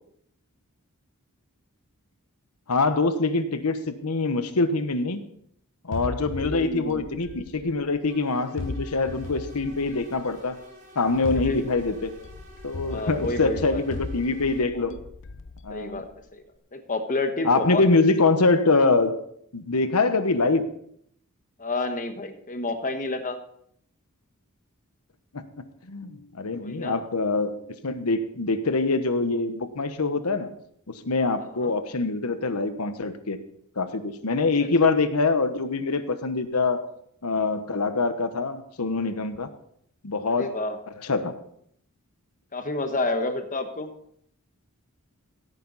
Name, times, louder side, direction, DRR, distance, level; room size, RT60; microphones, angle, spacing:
voice 1, 2.7-5.2 5.8-10.6 10.9-12.1 12.6-14.9 15.6-16.0 17.4-19.2 19.5-20.7 25.3-30.5 30.9-33.4 33.8-36.9 37.2-39.5 40.0-40.7 41.0-41.4, left 3 dB, 90° left, 10 dB, 1.1 m, -24 dB
sound 1, 5.9-8.0 8.6-10.4 11.1-16.1, left 3 dB, 60° left, 0.6 m, -37 dB
voice 2, 6.4-7.1 11.3-11.6 12.9-13.8 14.7-15.0 15.7-16.0 16.3-16.4 16.7-17.8 21.6-23.4 26.6-27.0 31.4-31.7 40.4-40.8 42.5-43.9, left 2 dB, 35° left, 7 dB, 1.3 m, -30 dB
sound 2, 8.0-14.6, equal, 40° right, 4.9 m, -50 dB
16.5 x 9.2 x 4.1 m, 0.69 s
head